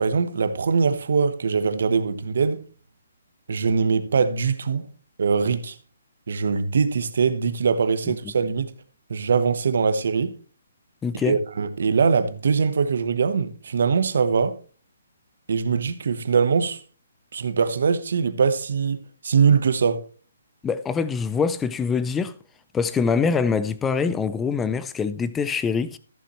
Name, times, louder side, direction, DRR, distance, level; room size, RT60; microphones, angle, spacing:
voice 1, 0.0-2.6 3.5-4.9 5.2-5.8 6.3-8.7 9.1-10.4 11.3-14.6 15.5-16.8 17.3-19.0 19.2-20.0, right 5 dB, 60° right, 1.1 m, -22 dB
voice 2, 11.0-11.4 20.6-22.3 22.7-26.0, left 5 dB, 10° left, 0.4 m, -24 dB
14.0 x 7.1 x 3.1 m
hypercardioid pair, 170°, 0 cm